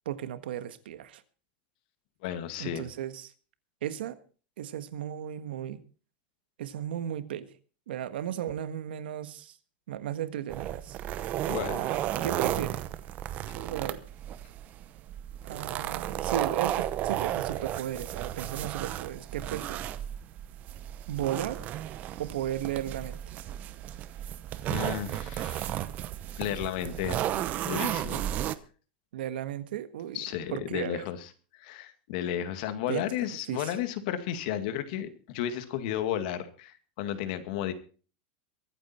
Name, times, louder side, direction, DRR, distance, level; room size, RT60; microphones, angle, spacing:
voice 1, 0.0-1.2 2.6-3.3 3.8-4.2 4.6-5.8 6.6-7.5 7.9-9.5 9.9-11.0 11.7-12.8 13.5-14.0 15.4-19.9 21.1-21.6 22.2-23.2 29.1-30.2 30.5-31.0 32.9-33.0 33.5-33.7, right 11 dB, 90° right, 1.6 m, -35 dB
voice 2, 2.2-2.9 11.5-11.8 24.7-25.8 26.4-28.3 30.1-31.2 31.6-37.7, left 10 dB, 55° left, 2.1 m, -33 dB
sound 1, 10.5-28.6, right 12 dB, 30° right, 0.8 m, -33 dB
23.0 x 9.0 x 4.4 m
supercardioid pair, 165°, 5 cm